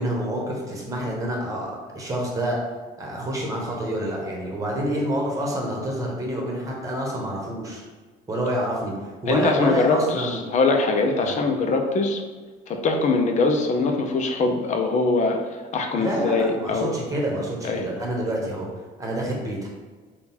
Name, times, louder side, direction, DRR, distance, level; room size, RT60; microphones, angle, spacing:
voice 1, 0.0-2.6 3.0-7.8 8.3-8.9 9.2-10.4 11.2-11.4 15.9-18.7 19.0-19.7, right 1 dB, 20° right, -2 dB, 1.1 m, -27 dB
voice 2, 9.3-12.2 12.7-15.4 15.7-16.9 17.6-17.9, left 3 dB, 45° left, 4 dB, 0.6 m, -22 dB
3.7 x 2.3 x 4.3 m, 1.4 s
cardioid pair, 110°, 17 cm